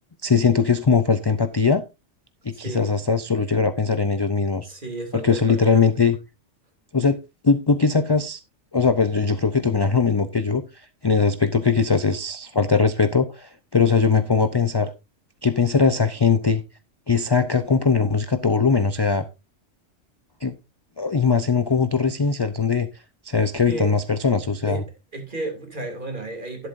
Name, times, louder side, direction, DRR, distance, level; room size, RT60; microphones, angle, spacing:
voice 1, 0.2-1.8 2.4-4.7 5.1-6.2 6.9-7.2 7.4-8.4 8.7-10.6 11.0-14.9 15.4-16.6 17.1-19.3 20.4-20.5 21.0-22.9 23.2-24.8, left 5 dB, 30° left, 10 dB, 0.4 m, -20 dB
voice 2, 2.5-2.9 4.6-5.8 23.7-23.9 24.6-24.8 25.1-26.7, right 2 dB, 40° right, 3 dB, 3.1 m, -32 dB
11.5 x 11.0 x 2.6 m, 0.25 s
omnidirectional pair, 1.2 m